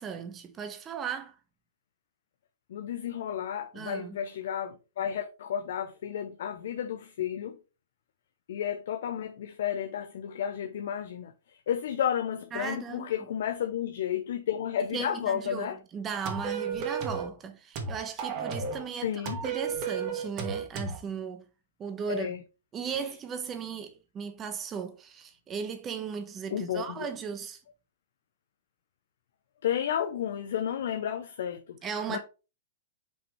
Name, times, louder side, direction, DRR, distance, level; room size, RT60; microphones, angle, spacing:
voice 1, 0.0-1.4 3.7-4.2 12.5-13.1 14.9-15.7 15.9-19.1 19.4-21.4 21.8-22.3 22.7-27.6 31.8-32.2, right 6 dB, 25° right, 1.2 m, -36 dB
voice 2, 2.7-7.6 8.5-15.8 19.0-19.4 22.1-22.4 22.8-23.0 26.5-27.1 29.6-31.8 32.1-32.2, left 9 dB, 65° left, 0.7 m, -32 dB
sound 1, 16.3-17.3 17.7-18.8 19.3-21.0, right 5 dB, 45° right, 2.0 m, -33 dB
5.8 x 5.1 x 3.3 m
hypercardioid pair, 110°, 0 cm